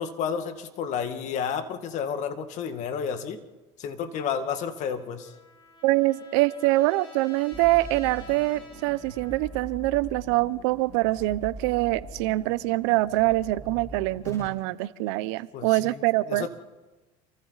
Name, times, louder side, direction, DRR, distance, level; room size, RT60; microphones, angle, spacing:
voice 1, 0.0-3.4 3.8-5.3 15.5-16.5, left 7 dB, 55° left, 8 dB, 2.0 m, -31 dB
Trumpet, 4.6-9.8, left 2 dB, 35° left, 7.2 m, -51 dB
voice 2, 5.8-16.5, right 19 dB, 80° right, 17 dB, 0.8 m, -24 dB
sound 1, 7.5-14.5, equal, 20° left, 4.9 m, -42 dB
28.5 x 24.0 x 4.1 m, 1.1 s
supercardioid pair, 110°, 15 cm